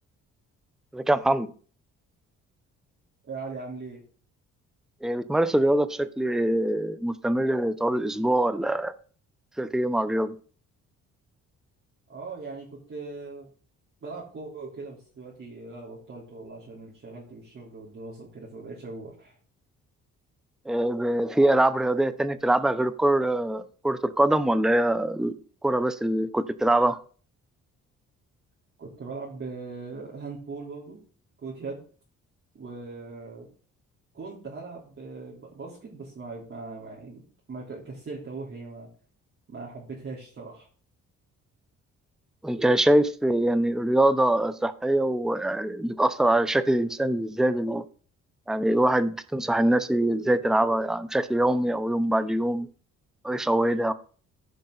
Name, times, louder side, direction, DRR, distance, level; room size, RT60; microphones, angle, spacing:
voice 1, 0.9-1.5 5.0-8.9 9.6-10.4 20.7-27.0 42.4-47.8 48.5-52.7 53.2-53.9, right 1 dB, ahead, 0.7 m, -24 dB
voice 2, 3.3-4.0 12.1-13.5 14.0-19.4 28.8-31.0 31.4-31.8 32.5-33.5 34.1-37.2 37.5-38.9 39.5-40.7, right 3 dB, 45° right, 3.5 m, -40 dB
15.0 x 5.3 x 3.9 m
cardioid pair, 90°, 30 cm